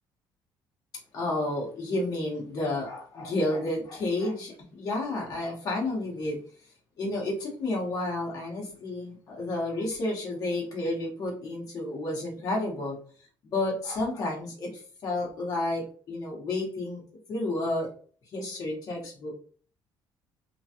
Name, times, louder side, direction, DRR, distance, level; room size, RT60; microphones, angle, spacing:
voice 1, 1.1-6.4 7.0-13.0 13.4-17.0 17.3-17.9 18.3-19.3, left 2 dB, 45° left, -2 dB, 1.1 m, -31 dB
3.1 x 2.3 x 2.7 m, 0.42 s
cardioid pair, 160°, 9 cm